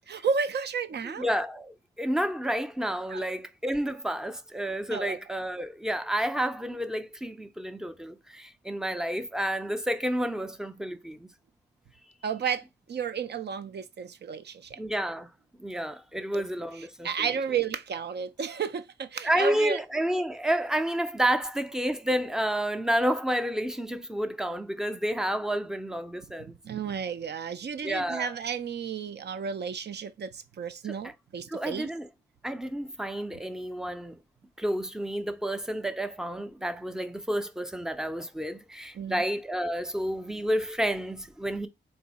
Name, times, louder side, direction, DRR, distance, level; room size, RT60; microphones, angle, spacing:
voice 1, 0.1-1.3 3.1-3.3 4.9-5.2 12.2-14.8 16.1-16.4 16.7-19.8 26.4-31.9 38.9-39.2, right 6 dB, 60° right, 0.5 m, -32 dB
voice 2, 1.1-11.3 14.8-17.3 19.2-26.5 27.8-28.3 30.8-31.0 31.5-32.1 32.4-34.2 34.6-41.7, equal, 5° right, 0.5 m, -30 dB
3.9 x 2.7 x 4.0 m
cardioid pair, 85°, 20 cm